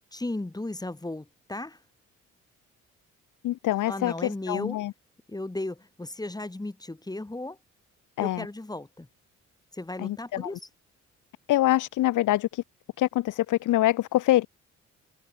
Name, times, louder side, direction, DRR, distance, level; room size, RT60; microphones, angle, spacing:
voice 1, 0.1-1.8 3.8-4.8 5.3-7.6 8.2-9.1 9.7-10.7, left 2 dB, 15° left, 6.2 m, -35 dB
voice 2, 3.4-4.9 8.2-8.4 10.0-10.5 11.5-12.6 13.0-14.5, left 15 dB, 85° left, 2.0 m, -25 dB
cardioid pair, 90°, 30 cm